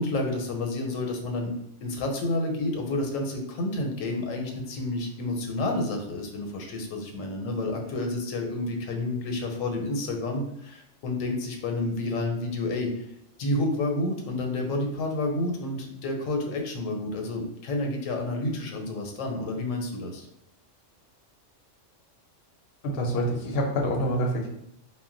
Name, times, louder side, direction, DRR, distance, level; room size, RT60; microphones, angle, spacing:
voice 1, 0.0-1.5 1.8-13.1 13.4-20.3, left 2 dB, 85° left, 3 dB, 1.0 m, -30 dB
voice 2, 22.8-24.5, equal, 60° left, 1 dB, 0.6 m, -26 dB
2.2 x 2.0 x 3.7 m, 0.77 s
omnidirectional pair, 1.3 m